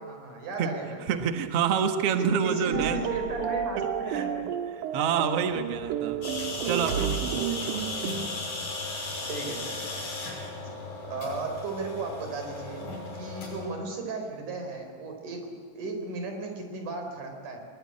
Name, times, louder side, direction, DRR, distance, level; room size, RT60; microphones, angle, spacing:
voice 1, 0.0-1.2 2.1-4.4 8.0-8.1 9.3-9.9 11.0-17.7, right 3 dB, 45° right, 4 dB, 5.1 m, -35 dB
voice 2, 1.1-3.0 4.1-4.3 4.9-6.2 6.6-7.9, right 7 dB, 85° right, 7 dB, 1.3 m, -27 dB
sound 1, 2.7-8.3, right 8 dB, 65° right, 2.1 m, -32 dB
sound 2, 6.2-13.7, left 3 dB, 45° left, 7.2 m, -36 dB
23.0 x 21.5 x 9.8 m, 2.1 s
omnidirectional pair, 5.0 m